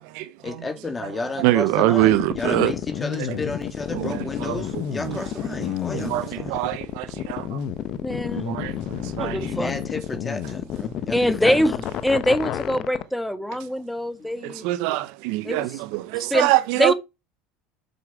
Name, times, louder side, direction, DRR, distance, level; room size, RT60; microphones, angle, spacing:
voice 1, 0.4-6.6 9.4-11.8 14.2-14.3, left 3 dB, 20° left, 2.8 m, -32 dB
voice 2, 1.4-2.7 3.3-3.4 3.9-5.2 5.5-7.6 8.4-8.7 9.2-9.4 14.4-16.9, right 17 dB, 70° right, 0.8 m, -24 dB
sound 1, 2.0-13.0, left 10 dB, 50° left, 0.9 m, -30 dB
voice 3, 8.0-8.4 9.2-9.7 11.1-11.7 12.0-14.7 15.4-15.7 16.2-16.5 16.7-16.9, equal, 5° left, 1.6 m, -23 dB
7.9 x 6.2 x 4.8 m
supercardioid pair, 100°, 0 cm